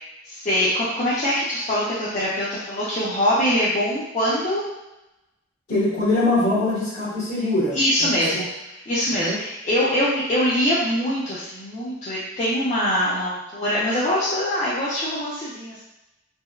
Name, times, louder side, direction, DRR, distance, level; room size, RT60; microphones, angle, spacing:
voice 1, 0.3-4.6 7.7-8.4 8.9-15.8, equal, 35° left, -9 dB, 0.5 m, -23 dB
voice 2, 5.7-8.4 9.1-9.4, left 2 dB, 60° left, -10 dB, 1.3 m, -23 dB
3.3 x 2.1 x 2.3 m, 0.96 s
head